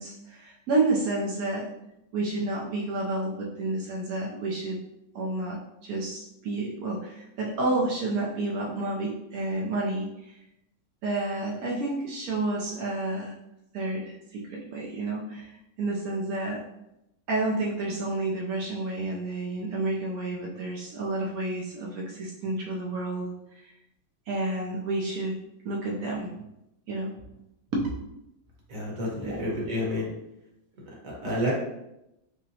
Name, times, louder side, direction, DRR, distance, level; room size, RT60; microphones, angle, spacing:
voice 1, 0.0-1.7 2.1-4.8 5.1-10.3 11.0-13.3 13.7-16.6 17.3-23.3 24.3-25.3 25.6-26.3 26.9-27.1 27.7-27.9 29.2-29.4, right 2 dB, 75° right, -2 dB, 0.8 m, -30 dB
voice 2, 28.7-30.1 31.0-31.5, left 1 dB, 50° right, -3 dB, 1.2 m, -29 dB
5.4 x 2.1 x 2.7 m, 0.86 s
omnidirectional pair, 2.1 m